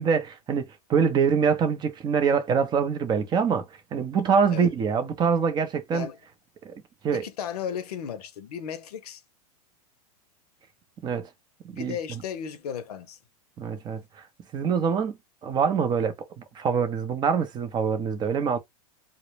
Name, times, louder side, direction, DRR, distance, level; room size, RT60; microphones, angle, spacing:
voice 1, 0.0-3.6 3.9-6.1 6.6-6.7 7.0-7.2 11.0-11.3 11.6-12.0 13.6-14.0 14.5-15.2 15.4-18.6, right 6 dB, 20° right, 0.4 m, -24 dB
voice 2, 7.1-9.2 11.7-13.2, left 8 dB, 80° left, 0.6 m, -35 dB
2.0 x 2.0 x 3.0 m
hypercardioid pair, 125°, 19 cm